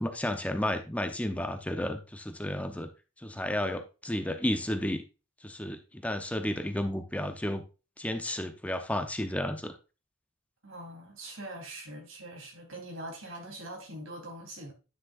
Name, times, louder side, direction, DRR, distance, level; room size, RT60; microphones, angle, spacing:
voice 1, 0.0-2.9 3.2-5.0 5.4-7.6 8.0-9.8, left 1 dB, 5° left, 0.7 m, -32 dB
voice 2, 10.6-14.7, right 1 dB, 85° right, 3.4 m, -43 dB
10.0 x 6.2 x 2.5 m
head